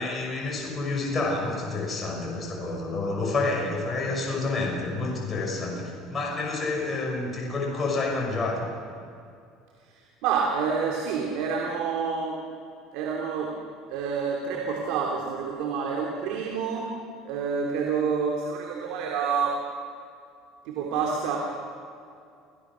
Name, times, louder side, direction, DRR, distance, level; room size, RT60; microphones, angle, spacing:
voice 1, 0.0-8.7, left 3 dB, 25° left, -2 dB, 6.5 m, -29 dB
voice 2, 10.2-12.4 12.9-13.5 13.9-16.9 17.2-19.6 20.6-21.4, right 6 dB, 75° right, 0 dB, 3.1 m, -28 dB
28.0 x 17.0 x 6.4 m, 2.4 s
supercardioid pair, 105°, 0 cm